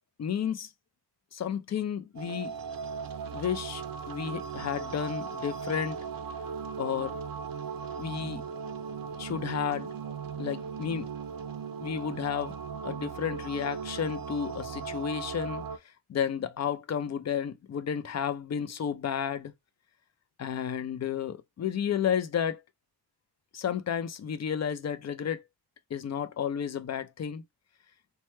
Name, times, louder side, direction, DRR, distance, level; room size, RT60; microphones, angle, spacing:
voice 1, 0.2-0.7 1.3-2.5 3.3-6.0 6.8-7.2 8.0-8.4 9.2-9.9 10.4-11.1 11.8-12.5 12.8-15.6 16.1-19.5 20.4-22.6 23.5-25.4 25.9-27.4, left 8 dB, 45° left, 0.4 m, -32 dB
sound 1, 2.1-15.8, right 6 dB, 60° right, 0.6 m, -38 dB
3.2 x 2.2 x 4.3 m
wide cardioid pair, 170°, 40 cm